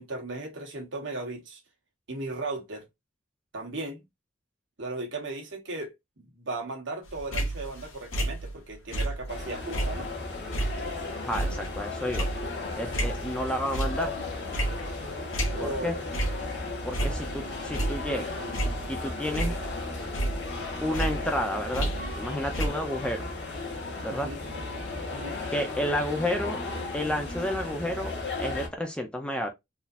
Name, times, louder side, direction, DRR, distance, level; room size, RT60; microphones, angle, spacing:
voice 1, 0.0-1.6 2.1-2.9 3.5-4.0 4.8-10.1 12.9-13.1 15.5-16.0 24.1-24.4 25.1-25.4, right 2 dB, 65° right, 1.3 m, -36 dB
sound 1, 7.1-9.4 9.7-13.4 13.7-14.2 14.5-15.9 16.1-16.5 16.8-18.2 18.5-19.9 20.1-22.3 22.5-22.7, right 1 dB, 85° left, 1.4 m, -31 dB
sound 2, 9.3-28.7, left 3 dB, 55° left, 1.4 m, -35 dB
voice 2, 11.2-12.3 12.8-14.1 15.6-15.9 16.8-18.4 18.9-19.5 20.8-23.3 24.0-24.3 25.5-26.6 26.9-28.1 28.4-29.5, left 1 dB, 5° left, 0.5 m, -31 dB
4.0 x 2.8 x 2.5 m
head